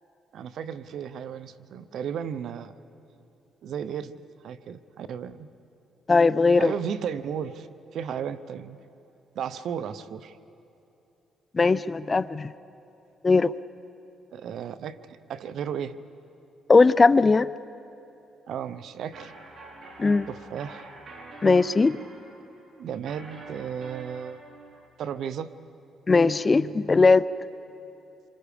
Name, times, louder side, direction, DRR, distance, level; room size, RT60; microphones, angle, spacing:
voice 1, 0.3-2.7 3.6-5.5 6.6-7.7 7.9-8.8 9.3-10.4 14.3-16.0 18.5-19.3 20.3-20.9 22.8-24.4 25.0-25.5, right 8 dB, 70° right, 14 dB, 0.7 m, -34 dB
voice 2, 6.1-6.7 11.5-12.5 13.2-13.5 16.7-17.5 20.0-20.3 21.4-22.0 26.1-27.3, left 4 dB, 30° left, 17 dB, 0.5 m, -19 dB
sound 1, 19.1-24.9, right 2 dB, 55° right, 3.8 m, -46 dB
27.0 x 25.5 x 5.1 m, 2.9 s
cardioid pair, 90°, 0 cm